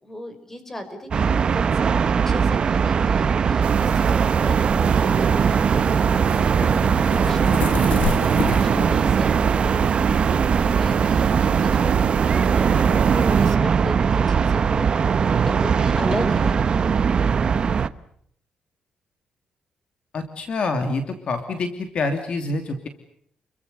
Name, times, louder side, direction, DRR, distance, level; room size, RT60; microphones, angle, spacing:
voice 1, 0.0-9.6 10.0-14.9 15.4-16.6, left 1 dB, 15° left, 9 dB, 5.0 m, -36 dB
sound 1, 1.1-17.9, right 6 dB, 40° right, 1.0 m, -20 dB
sound 2, 3.4-12.9, left 8 dB, 80° left, 2.3 m, -34 dB
sound 3, 3.6-13.6, right 8 dB, 60° right, 1.3 m, -25 dB
voice 2, 20.1-22.9, left 3 dB, 50° left, 6 dB, 2.8 m, -26 dB
30.0 x 23.0 x 6.8 m, 0.68 s
cardioid pair, 145°, 2 cm